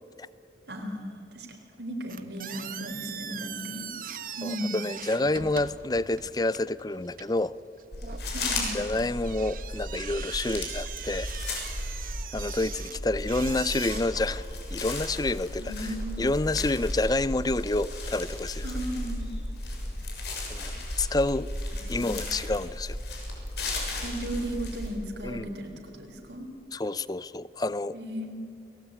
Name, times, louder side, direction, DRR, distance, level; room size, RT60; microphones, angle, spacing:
voice 1, 0.7-3.9 4.4-4.8 8.2-8.7 15.6-16.2 18.6-19.3 21.7-22.1 24.0-26.5 27.9-28.3, equal, 80° right, 3 dB, 4.1 m, -36 dB
Door Squeak Close, 2.1-14.0, right 8 dB, 50° right, 1.1 m, -41 dB
voice 2, 4.4-7.5 8.7-11.3 12.3-14.4 14.7-15.9 16.2-18.7 20.5-21.5 21.9-23.0 25.2-25.5 26.7-27.9, left 2 dB, 20° left, 18 dB, 0.5 m, -28 dB
sound 1, 7.9-24.9, left 1 dB, 70° left, 6.8 m, -35 dB
29.5 x 19.5 x 9.0 m, 2.9 s
head